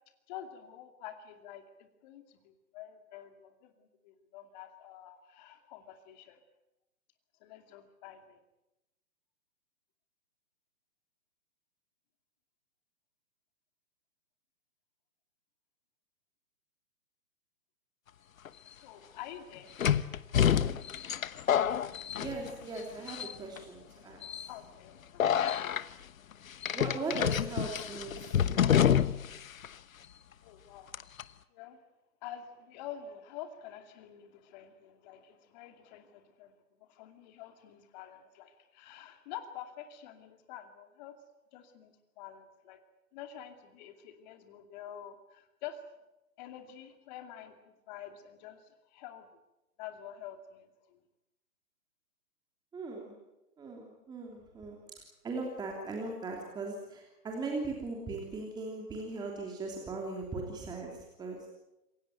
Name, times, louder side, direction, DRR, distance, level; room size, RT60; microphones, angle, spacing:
voice 1, 0.3-6.4 7.4-8.4 18.6-19.8 24.5-26.0 30.4-30.9 31.5-31.8 32.2-36.5 36.8-41.1 41.5-42.8 43.1-45.8 46.4-49.3 49.8-51.0, left 10 dB, 30° left, 7 dB, 2.5 m, -48 dB
sound 1, 18.5-18.6 19.8-22.8 23.1-23.6 24.2-24.5 25.2-25.8 26.6-29.4 29.6-29.7 30.9-31.2, left 9 dB, 60° left, 1.2 m, -28 dB
voice 2, 22.2-24.2 26.7-28.7 52.7-53.2 53.6-54.8 55.2-61.5, right 3 dB, 10° right, 0 dB, 3.1 m, -39 dB
27.0 x 16.5 x 9.2 m, 0.96 s
hypercardioid pair, 145°, 46 cm